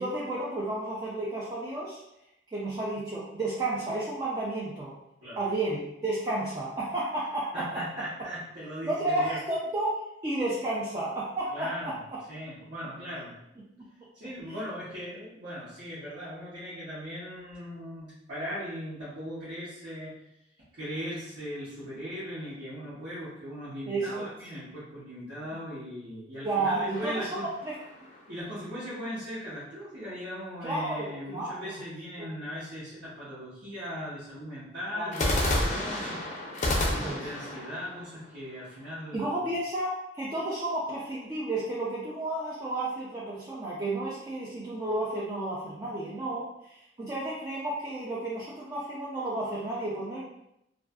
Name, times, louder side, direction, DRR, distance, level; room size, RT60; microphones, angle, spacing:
voice 1, 0.0-2.0 2.5-4.9 5.4-7.8 8.8-11.9 14.5-14.6 23.9-24.3 26.4-27.3 27.7-27.8 30.6-31.7 32.2-32.3 34.9-35.1 36.8-37.2 39.1-50.2, right 2 dB, 20° right, -7 dB, 0.4 m, -32 dB
voice 2, 7.5-9.4 11.5-11.9 12.3-13.3 14.1-20.1 20.7-27.4 28.3-36.6 36.9-39.4, equal, 70° right, -13 dB, 1.0 m, -39 dB
sound 1, 26.9-28.4 35.1-39.1, left 1 dB, 40° left, 0.4 m, -31 dB
2.5 x 2.3 x 2.2 m, 0.82 s
head